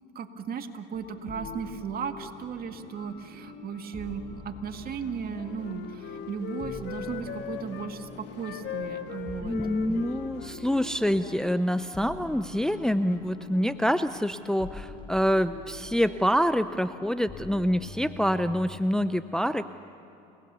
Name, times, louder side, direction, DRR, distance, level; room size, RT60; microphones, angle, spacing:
voice 1, 0.2-9.6, right 6 dB, 45° right, 6 dB, 2.0 m, -36 dB
sound 1, 0.9-18.8, left 4 dB, 25° left, 3.2 m, -45 dB
Wind instrument woodwind instrument, 4.8-7.9 8.4-11.6, left 8 dB, 60° left, 2.0 m, -40 dB
sound 2, 6.9-14.2, left 8 dB, 80° left, 1.8 m, -51 dB
voice 2, 9.4-19.7, equal, 5° left, 11 dB, 0.6 m, -26 dB
30.0 x 19.0 x 7.0 m, 2.9 s
supercardioid pair, 80°, 20 cm